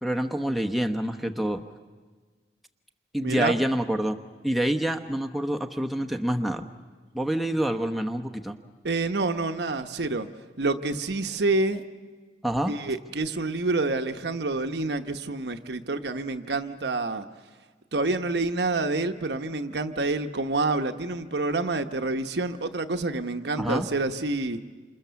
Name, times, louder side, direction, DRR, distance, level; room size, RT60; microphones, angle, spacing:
voice 1, 0.0-1.6 3.1-4.2 4.4-6.7 7.1-8.6 12.4-12.7 23.6-23.9, right 1 dB, ahead, 4 dB, 0.9 m, -27 dB
voice 2, 3.1-3.5 8.8-10.3 10.6-11.8 12.7-17.2 17.9-24.6, right 2 dB, 65° right, 7 dB, 1.1 m, -27 dB
28.0 x 27.5 x 7.0 m, 1.4 s
head